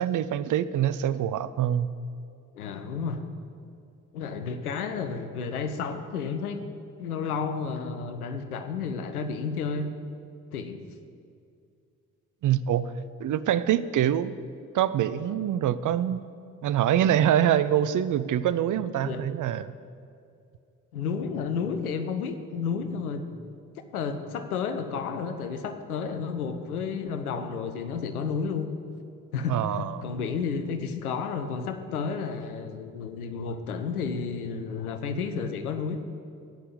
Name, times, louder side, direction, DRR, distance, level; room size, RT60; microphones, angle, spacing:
voice 1, 0.0-1.9 12.4-12.9 13.2-14.3 14.7-16.2 16.6-19.7 29.5-30.0, right 10 dB, 45° right, 14 dB, 0.6 m, -25 dB
voice 2, 2.5-3.2 4.1-6.6 7.0-9.9 10.5-10.8 19.0-19.2 20.9-23.3 23.9-28.7 29.3-36.0, left 5 dB, 85° left, 8 dB, 0.8 m, -31 dB
16.0 x 5.7 x 7.9 m, 2.4 s
figure-of-eight pair, 40°, 43 cm